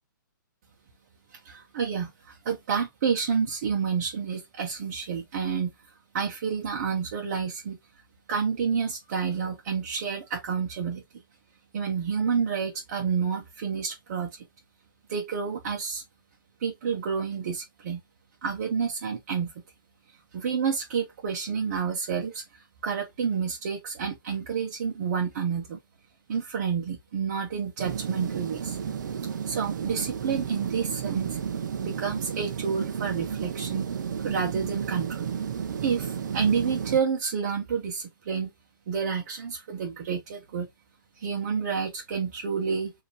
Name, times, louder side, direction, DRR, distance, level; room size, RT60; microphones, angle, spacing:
voice 1, 1.3-5.7 6.1-7.8 8.3-11.0 11.7-14.4 15.1-16.0 16.6-18.0 18.4-19.5 20.3-25.8 26.3-28.8 29.4-31.4 31.8-33.9 34.2-35.3 35.8-38.5 38.9-40.7 41.2-42.9, right 6 dB, 40° right, 1.1 m, -29 dB
sound 1, 27.8-37.0, right 7 dB, 60° right, 0.8 m, -32 dB
5.0 x 3.0 x 3.4 m
hypercardioid pair, 170°, 11 cm